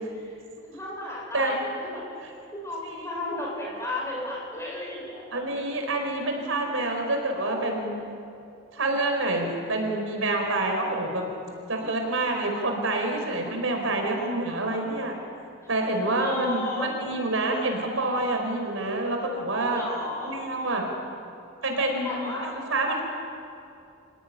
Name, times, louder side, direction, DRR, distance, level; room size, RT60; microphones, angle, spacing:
voice 1, 0.1-2.1 2.5-5.4 15.6-15.7 16.2-16.9 19.7-20.7 22.0-22.6, left 1 dB, 15° left, -3 dB, 7.5 m, -34 dB
voice 2, 5.3-7.9 8.7-11.2 11.7-15.1 15.7-19.8 20.2-20.9 21.6-23.0, right 2 dB, 75° right, 3 dB, 4.8 m, -27 dB
27.5 x 17.0 x 10.0 m, 2.6 s
head